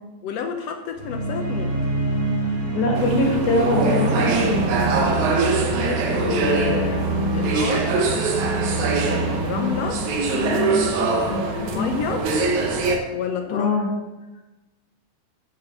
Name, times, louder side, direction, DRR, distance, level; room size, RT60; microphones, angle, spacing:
voice 1, 0.2-1.7 5.5-7.9 8.8-10.0 10.9-12.3 13.1-13.7, left 6 dB, 70° left, 5 dB, 1.7 m, -30 dB
sound 1, 0.9-11.0, right 2 dB, 15° right, 2.4 m, -27 dB
voice 2, 2.7-4.6 9.5-10.0 10.3-10.9 11.3-11.4 11.7-11.9 13.5-13.9, left 2 dB, 90° left, -1 dB, 2.9 m, -23 dB
sound 2, 3.0-13.0, right 3 dB, 80° right, 2.5 m, -24 dB
Wind instrument woodwind instrument, 3.9-9.9, right 6 dB, 55° right, 2.2 m, -32 dB
7.9 x 6.9 x 6.5 m, 1.1 s
omnidirectional pair, 3.4 m